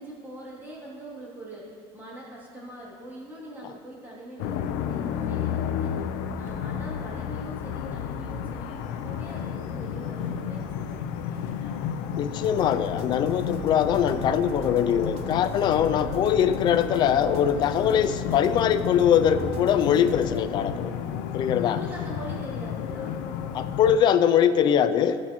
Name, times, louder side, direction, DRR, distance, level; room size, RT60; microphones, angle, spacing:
voice 1, 0.0-11.8 21.6-23.2, right 1 dB, 15° right, -7 dB, 2.8 m, -42 dB
sound 1, 4.4-24.0, left 8 dB, 75° left, 0.6 m, -32 dB
voice 2, 12.2-21.0 21.3-21.8 23.5-25.2, left 9 dB, 40° left, 11 dB, 0.3 m, -22 dB
sound 2, 12.4-20.4, right 5 dB, 60° right, 0.9 m, -39 dB
16.0 x 7.6 x 3.1 m, 2.2 s
cardioid pair, 155°, 12 cm